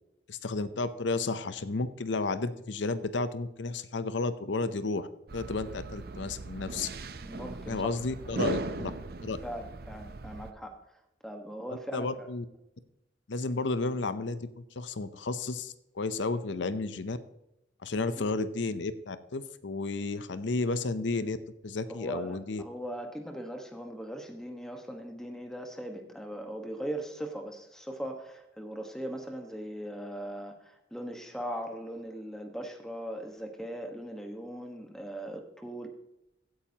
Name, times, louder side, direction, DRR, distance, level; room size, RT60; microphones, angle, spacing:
voice 1, 0.3-6.9 7.7-8.9 9.2-9.4 11.9-12.4 13.3-17.2 17.8-21.4 21.6-22.6, left 3 dB, 85° left, 13 dB, 0.7 m, -32 dB
sound 1, 5.3-10.5, right 3 dB, 55° right, 0.6 m, -38 dB
voice 2, 7.3-7.9 8.3-8.7 9.4-10.8 11.2-12.3 18.0-18.3 21.9-35.9, equal, 5° left, 4 dB, 1.3 m, -39 dB
16.0 x 8.8 x 2.9 m, 0.86 s
head